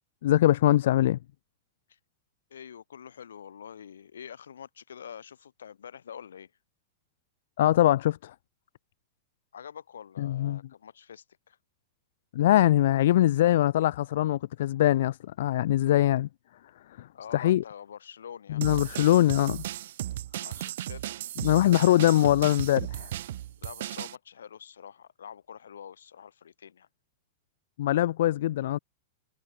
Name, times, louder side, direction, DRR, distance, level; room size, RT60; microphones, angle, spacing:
voice 1, 0.2-1.2 7.6-8.3 10.2-10.6 12.3-16.3 17.0-17.1 17.3-17.6 18.5-19.6 21.4-23.1 27.8-28.8, left 13 dB, 70° left, 0.6 m, -22 dB
voice 2, 2.5-6.5 9.5-11.6 17.1-18.6 20.4-21.1 21.4-22.1 22.6-22.7 23.6-26.9, left 8 dB, 85° left, 3.3 m, -46 dB
sound 1, 18.6-24.2, right 13 dB, 70° right, 0.9 m, -36 dB
hypercardioid pair, 120°, 0 cm